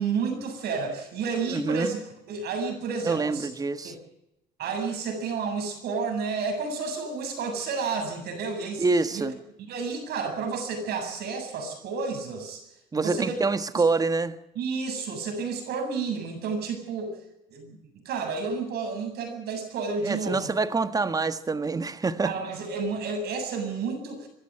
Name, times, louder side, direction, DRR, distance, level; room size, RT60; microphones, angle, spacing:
voice 1, 0.0-2.0 2.3-3.5 3.8-4.0 4.6-8.9 9.1-9.2 9.7-12.6 12.9-13.4 13.7-13.8 14.6-17.2 17.5-17.8 18.0-20.5 22.2-24.3, right 4 dB, 70° right, 5 dB, 7.8 m, -31 dB
voice 2, 1.5-1.9 3.0-3.9 8.8-9.4 12.9-14.4 20.0-22.3, right 3 dB, 20° right, 11 dB, 1.5 m, -26 dB
23.0 x 12.5 x 9.9 m, 0.87 s
cardioid pair, 110°, 17 cm